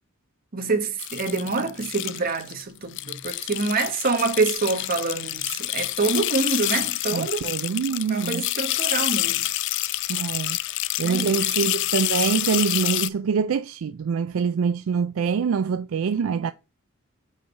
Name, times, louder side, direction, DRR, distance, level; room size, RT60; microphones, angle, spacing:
voice 1, 0.5-7.5 8.1-9.4 11.0-11.8, right 3 dB, 45° right, 1.1 m, -26 dB
sound 1, 1.0-2.6 2.9-13.1, left 16 dB, 60° left, 0.3 m, -27 dB
voice 2, 7.1-8.5 10.1-10.6 11.0-16.5, right 6 dB, 70° right, 0.4 m, -25 dB
5.0 x 4.6 x 5.4 m
head